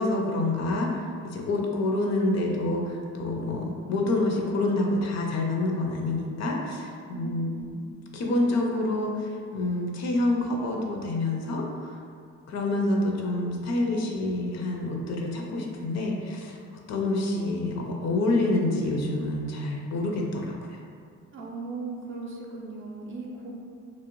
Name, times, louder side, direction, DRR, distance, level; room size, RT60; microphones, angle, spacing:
voice 1, 0.0-7.5 8.1-11.9 12.5-16.6 16.9-20.8, left 2 dB, 60° left, 1 dB, 0.5 m, -27 dB
voice 2, 7.1-7.7 21.3-23.5, right 3 dB, 40° right, -2 dB, 0.5 m, -37 dB
2.5 x 2.0 x 3.0 m, 2.2 s
cardioid pair, 90°, 30 cm